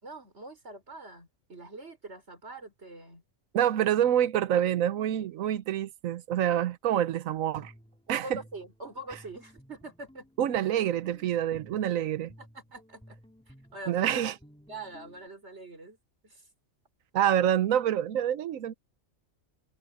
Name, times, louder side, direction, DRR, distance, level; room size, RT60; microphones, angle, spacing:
voice 1, 0.0-3.2 6.9-7.1 8.1-10.2 10.6-10.7 12.4-13.2 13.5-14.2 14.7-16.0 16.2-16.5, right 2 dB, 55° right, 4.8 m, -44 dB
voice 2, 3.5-7.7 8.1-8.4 10.4-12.3 13.9-14.3 17.1-18.7, right 10 dB, 90° right, 1.2 m, -27 dB
Guitar, 7.3-15.3, equal, 5° left, 2.5 m, -56 dB
omnidirectional pair, 1.4 m